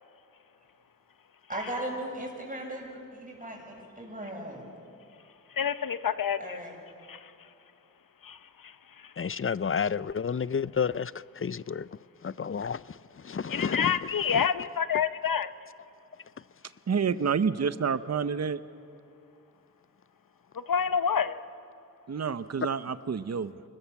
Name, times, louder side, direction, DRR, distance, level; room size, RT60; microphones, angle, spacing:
voice 1, 1.5-4.7 6.4-6.8, right 1 dB, 25° right, 7.2 m, -37 dB
voice 2, 5.6-6.6 7.1-7.3 8.2-8.4 8.6-8.7 9.0-9.1 13.5-15.5 20.7-21.4, left 7 dB, 75° left, 0.9 m, -28 dB
voice 3, 9.2-11.1 11.4-11.9 12.2-12.8 13.2-14.0 14.3-14.4, left 6 dB, 40° left, 0.5 m, -30 dB
voice 4, 16.9-18.6 22.1-23.5, right 6 dB, 50° right, 0.8 m, -28 dB
28.5 x 21.0 x 7.2 m
cardioid pair, 45°, 34 cm